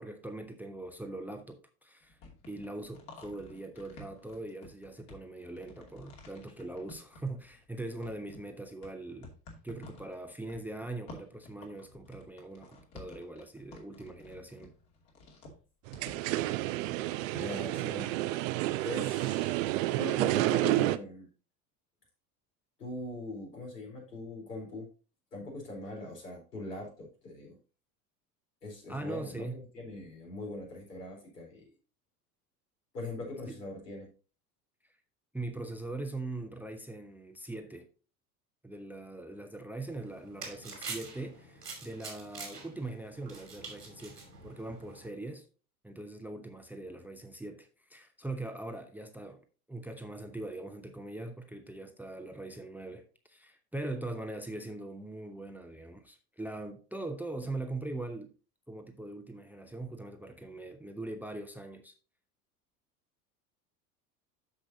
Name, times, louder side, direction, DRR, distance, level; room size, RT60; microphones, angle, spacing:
voice 1, 0.0-2.2 2.5-9.3 9.6-14.7 28.9-29.7 33.5-33.6 35.3-37.9 38.6-45.4 45.8-58.3 58.7-61.9, right 2 dB, 5° right, 0.8 m, -41 dB
sound 1, 2.0-7.7 8.0-17.4, left 2 dB, 50° left, 2.7 m, -52 dB
sound 2, 15.9-21.0, right 17 dB, 55° right, 0.7 m, -30 dB
voice 2, 17.3-18.2 18.8-21.3 22.8-24.9 25.3-27.6 28.6-31.7 32.9-34.1, left 2 dB, 80° left, 4.1 m, -41 dB
sound 3, 39.9-45.1, right 4 dB, 85° right, 2.8 m, -46 dB
13.0 x 5.0 x 2.8 m
figure-of-eight pair, 75°, 47 cm